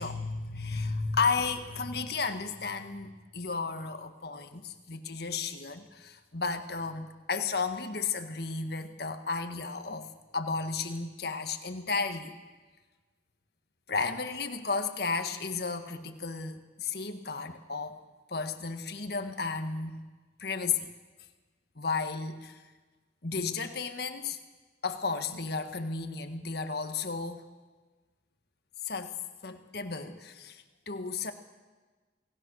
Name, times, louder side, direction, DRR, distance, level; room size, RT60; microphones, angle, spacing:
voice 1, 0.0-12.3 13.9-18.0 18.3-20.1 20.4-20.9 21.7-22.6 23.2-24.4 24.8-27.4 28.8-29.2 29.4-31.3, left 4 dB, 60° left, 7 dB, 1.6 m, -33 dB
28.5 x 19.0 x 6.4 m, 1.3 s
head